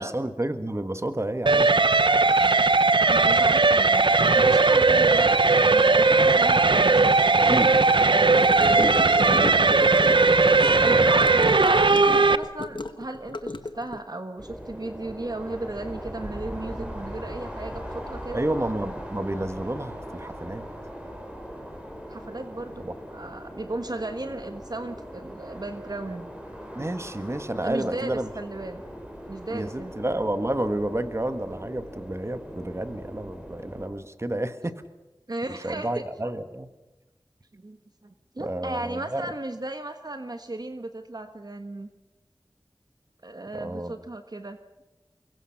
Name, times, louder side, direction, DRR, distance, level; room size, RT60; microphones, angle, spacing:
voice 1, 0.0-1.7 7.5-7.7 8.6-9.8 10.0-11.3 18.3-20.7 22.8-22.9 26.8-28.3 29.5-34.8 35.6-36.7 38.4-39.3 43.5-43.9, right 1 dB, 30° right, 10 dB, 1.6 m, -31 dB
sound 1, 1.5-12.4, right 3 dB, 70° right, 0.8 m, -18 dB
voice 2, 3.1-4.0 4.3-5.5 5.7-7.6 10.6-11.3 11.6-18.4 22.1-22.8 23.1-26.3 27.6-28.8 29.3-29.9 34.3-34.4 35.3-36.3 37.5-37.8 38.0-41.9 43.2-44.6, right 2 dB, 50° right, 8 dB, 1.3 m, -36 dB
Gurgling / Car passing by / Sink (filling or washing), 8.3-14.0, left 2 dB, 65° left, 1.3 m, -34 dB
sound 2, 14.4-33.9, equal, 10° right, 5.3 m, -40 dB
24.5 x 22.0 x 5.9 m, 1.1 s
wide cardioid pair, 50°, 9 cm